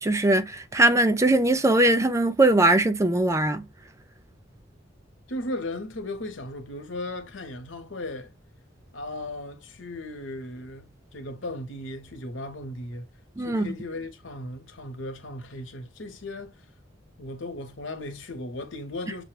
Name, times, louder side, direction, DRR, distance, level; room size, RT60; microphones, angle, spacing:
voice 1, 0.0-3.6 13.4-13.7, right 2 dB, 15° right, 0.4 m, -21 dB
voice 2, 5.3-8.3 8.9-13.1 13.4-16.6 17.2-19.2, left 1 dB, 85° left, 1.1 m, -36 dB
6.7 x 2.3 x 3.2 m
head